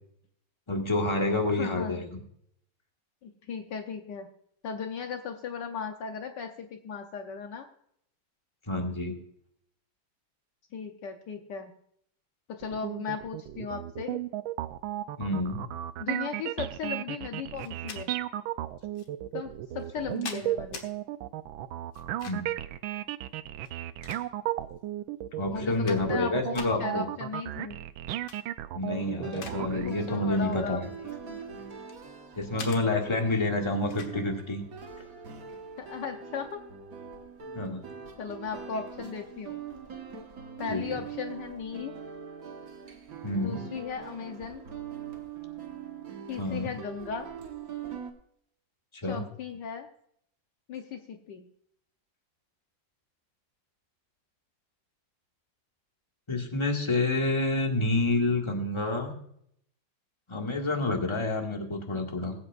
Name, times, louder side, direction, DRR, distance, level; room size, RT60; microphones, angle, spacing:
voice 1, 0.7-2.2 8.7-9.1 15.2-15.6 22.2-22.4 25.3-27.0 28.7-30.8 32.3-34.6 37.5-37.8 40.7-40.8 43.2-43.6 46.4-46.7 49.0-49.2 56.3-59.1 60.3-62.3, left 2 dB, 15° left, 1 dB, 1.8 m, -28 dB
voice 2, 1.5-2.1 3.2-4.3 4.6-7.7 10.7-11.7 12.5-14.2 16.0-18.1 19.3-20.9 25.5-27.8 29.5-31.4 35.8-36.6 38.2-39.6 40.6-41.9 43.3-44.6 46.3-47.3 49.0-49.9 50.7-51.5, left 6 dB, 70° left, 5 dB, 1.4 m, -37 dB
sound 1, 12.6-29.9, right 13 dB, 85° right, 1.4 m, -35 dB
sound 2, 17.6-18.0 19.0-19.1 19.8-20.9 21.9-22.6 23.6-24.6 25.2-25.3 25.6-26.3 26.5-26.7 28.1-28.4 28.8-29.6 29.9-30.2 30.9-32.0 32.6-32.8 33.9-34.2, left 5 dB, 85° left, 2.1 m, -43 dB
sound 3, 29.0-48.1, right 7 dB, 50° right, 1.7 m, -42 dB
21.0 x 8.6 x 2.5 m, 0.70 s
omnidirectional pair, 2.1 m